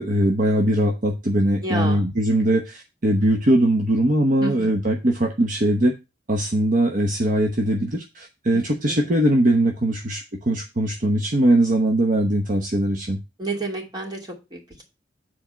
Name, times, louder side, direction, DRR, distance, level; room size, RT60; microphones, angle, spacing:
voice 1, 0.0-5.9 6.3-13.2, right 1 dB, 50° right, 3 dB, 0.9 m, -21 dB
voice 2, 1.6-2.1 4.4-4.7 8.5-9.0 13.4-14.8, right 2 dB, 25° right, -1 dB, 2.4 m, -31 dB
7.3 x 4.4 x 5.7 m, 0.26 s
head